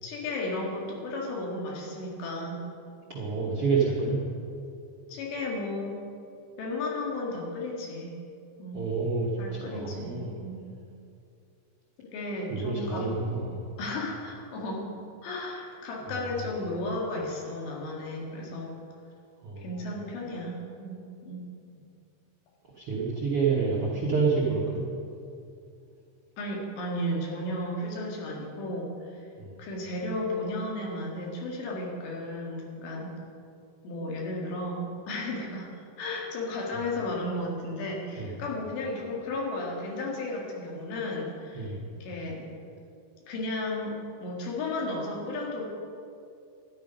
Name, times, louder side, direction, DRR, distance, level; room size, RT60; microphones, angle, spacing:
voice 1, 0.0-2.6 3.4-3.6 5.1-6.0 6.6-8.1 8.6-8.8 9.4-10.1 10.4-10.6 12.0-13.0 13.8-14.9 15.2-18.7 19.6-21.4 26.4-29.2 29.6-33.1 33.8-42.5 43.3-45.6, left 2 dB, 80° left, -2 dB, 4.2 m, -34 dB
voice 2, 3.1-4.2 8.7-10.3 12.5-13.7 16.1-16.2 19.4-19.8 22.7-24.8 29.4-29.5 38.2-38.4 41.5-41.8, right 4 dB, 75° right, -4 dB, 1.3 m, -28 dB
13.0 x 10.5 x 5.3 m, 2.5 s
omnidirectional pair, 4.9 m